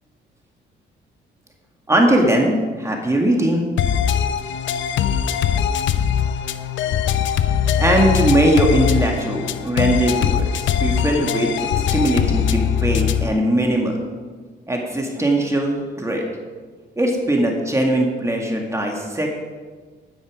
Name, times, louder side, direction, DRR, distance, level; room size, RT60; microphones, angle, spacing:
voice 1, 1.9-3.7 7.8-14.0 14.7-16.3 17.0-19.3, right 1 dB, 15° right, 0 dB, 2.0 m, -20 dB
sound 1, 3.8-13.4, left 8 dB, 70° left, 0.7 m, -21 dB
12.0 x 9.6 x 5.0 m, 1.5 s
cardioid pair, 90°, 20 cm